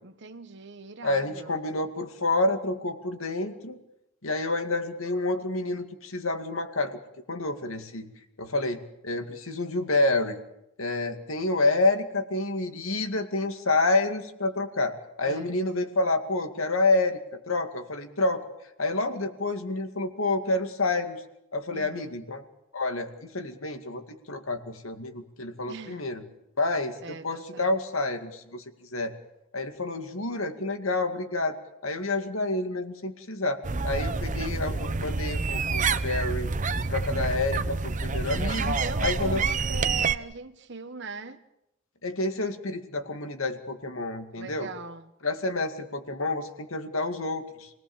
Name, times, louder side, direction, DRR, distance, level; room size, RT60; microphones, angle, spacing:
voice 1, 0.0-1.6 15.2-15.5 21.7-22.2 25.7-26.0 27.0-27.7 34.3-34.6 38.6-41.4 44.3-45.1, right 4 dB, 60° right, 1.2 m, -40 dB
voice 2, 1.0-3.8 4.2-7.0 7.3-8.1 8.4-10.4 10.8-17.2 17.5-18.5 18.8-21.2 21.5-22.4 22.7-26.2 26.6-28.6 28.9-29.1 29.5-31.6 31.8-36.5 36.9-38.7 39.0-39.4 42.0-44.7 45.2-47.7, left 2 dB, 80° left, 2.3 m, -28 dB
sound 1, 33.6-40.1, right 4 dB, 40° right, 0.8 m, -28 dB
28.0 x 18.5 x 7.3 m
head